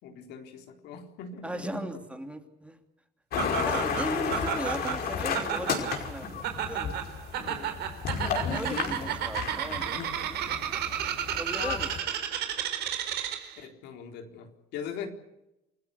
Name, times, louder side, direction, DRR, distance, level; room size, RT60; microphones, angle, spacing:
voice 1, 0.0-2.0 3.3-3.8 4.2-4.4 7.4-7.8 9.9-10.2 13.6-15.1, left 6 dB, 85° left, 4 dB, 4.1 m, -41 dB
voice 2, 1.4-2.8 3.6-6.9 8.2-10.0 11.3-12.1, right 1 dB, 5° right, 5 dB, 3.0 m, -37 dB
sound 1, 3.3-12.0, left 7 dB, 65° left, 5.3 m, -33 dB
Laughter, 3.4-13.6, right 10 dB, 75° right, 4.3 m, -33 dB
28.5 x 16.5 x 8.4 m, 0.90 s
cardioid pair, 110°, 17 cm